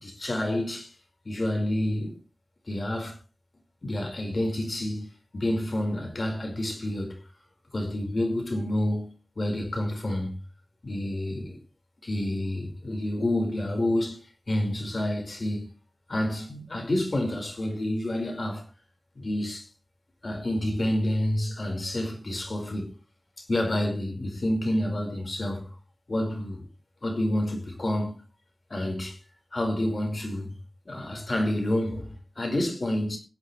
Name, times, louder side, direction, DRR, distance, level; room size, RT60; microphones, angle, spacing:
voice 1, 0.0-0.9 1.2-2.2 2.7-3.1 3.8-7.2 7.7-10.4 10.8-11.6 12.0-15.7 16.1-18.7 19.1-19.7 20.2-22.9 23.4-25.7 26.1-26.6 27.0-28.2 28.7-29.2 29.5-30.6 30.8-33.2, left 1 dB, 60° left, 5.0 m, -29 dB
22.5 x 8.1 x 3.3 m
wide cardioid pair, 50°, 0 cm